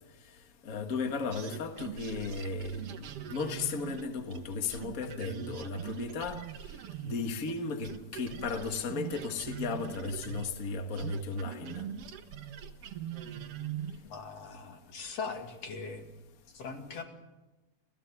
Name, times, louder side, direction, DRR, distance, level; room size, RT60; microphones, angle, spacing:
voice 1, 0.6-6.4 7.0-11.8, left 4 dB, 85° left, 0.7 m, -35 dB
sound 1, 1.3-7.6 7.8-14.1, right 10 dB, 85° right, 1.3 m, -42 dB
voice 2, 14.0-16.0 16.5-17.0, left 5 dB, 45° left, 3.0 m, -40 dB
29.5 x 14.5 x 8.2 m
omnidirectional pair, 4.4 m